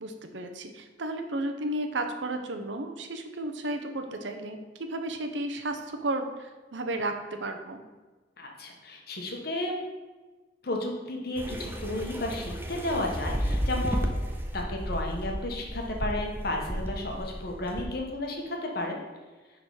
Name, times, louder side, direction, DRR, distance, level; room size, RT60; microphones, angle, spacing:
voice 1, 0.0-7.8, right 1 dB, 80° right, 6 dB, 0.9 m, -33 dB
voice 2, 8.4-9.8 10.6-14.1 14.5-19.0, left 1 dB, 55° left, 1 dB, 1.3 m, -33 dB
sound 1, 11.3-17.8, equal, 10° right, 0.6 m, -32 dB
9.7 x 4.0 x 4.9 m, 1.3 s
head